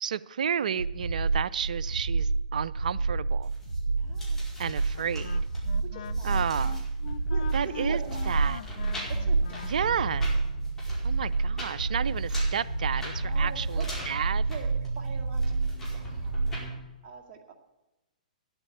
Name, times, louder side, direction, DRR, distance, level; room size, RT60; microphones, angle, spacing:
voice 1, 0.0-3.5 4.6-5.4 6.2-6.8 7.5-8.0 8.3-8.6 9.6-10.3 11.0-14.4, right 8 dB, 70° right, 0.4 m, -31 dB
sound 1, 0.8-16.6, right 3 dB, 85° right, 0.9 m, -29 dB
sound 2, 3.4-16.7, right 1 dB, 5° left, 4.9 m, -40 dB
voice 2, 4.0-4.5 5.9-6.6 7.3-8.6 9.2-9.9 13.2-16.4 17.0-17.5, right 6 dB, 30° right, 2.2 m, -44 dB
Wind instrument woodwind instrument, 4.9-10.3, left 8 dB, 55° left, 0.5 m, -43 dB
10.5 x 8.8 x 8.6 m
hypercardioid pair, 120°, 4 cm